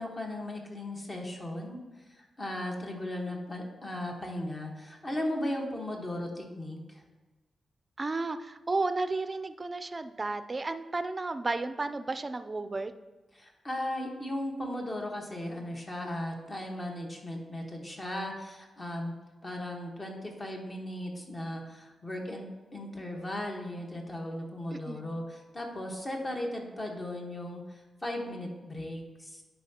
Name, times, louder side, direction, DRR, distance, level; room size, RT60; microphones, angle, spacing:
voice 1, 0.0-7.0 13.3-19.1 19.4-29.4, left 1 dB, 30° left, 1 dB, 1.3 m, -37 dB
voice 2, 8.0-12.9 24.7-25.0, right 3 dB, 30° right, 11 dB, 0.4 m, -33 dB
10.5 x 4.5 x 2.9 m, 1.2 s
cardioid pair, 95°, 0 cm